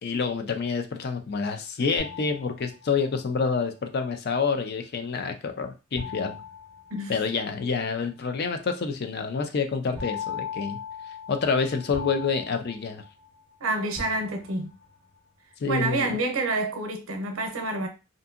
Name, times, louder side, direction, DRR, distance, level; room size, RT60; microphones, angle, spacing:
voice 1, 0.0-6.4 7.1-10.8 11.3-13.0 15.6-16.2, left 5 dB, 50° left, 0.5 m, -28 dB
sound 1, 2.0-3.2 6.0-7.6 10.0-13.5 14.0-14.9, left 6 dB, 10° left, 0.8 m, -39 dB
voice 2, 13.6-14.7 15.7-17.9, right 2 dB, 85° right, 0.6 m, -28 dB
2.6 x 2.6 x 2.4 m
head